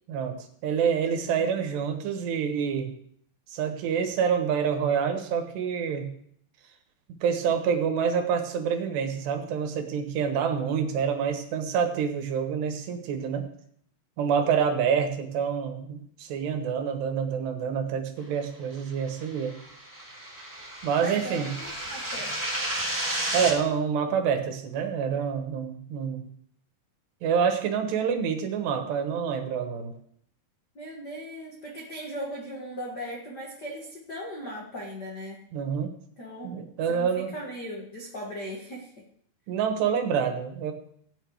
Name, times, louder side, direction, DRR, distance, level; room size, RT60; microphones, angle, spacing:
voice 1, 0.1-2.9 3.5-6.1 7.2-13.5 14.2-19.6 20.8-21.5 23.3-26.3 27.2-29.9 35.5-35.9 36.4-37.3 39.5-40.7, right 7 dB, 80° right, 5 dB, 3.5 m, -27 dB
sound 1, 19.1-23.5, right 1 dB, 10° right, 1.2 m, -32 dB
voice 2, 21.0-22.3 30.7-35.4 36.2-36.6 36.9-39.1, equal, 65° left, -2 dB, 1.0 m, -38 dB
15.0 x 9.3 x 4.8 m, 0.66 s
omnidirectional pair, 4.8 m